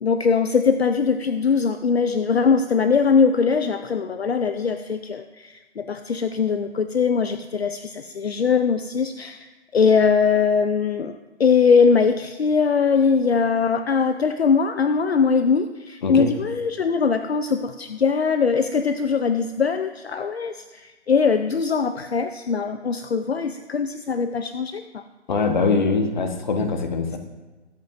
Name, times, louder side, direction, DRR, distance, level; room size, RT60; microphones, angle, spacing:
voice 1, 0.0-11.1 11.4-25.0, left 5 dB, 65° left, 9 dB, 0.7 m, -21 dB
voice 2, 16.0-16.3 25.3-27.2, left 4 dB, 40° left, 6 dB, 1.3 m, -22 dB
21.0 x 8.1 x 2.7 m, 1.2 s
figure-of-eight pair, 150°, 34 cm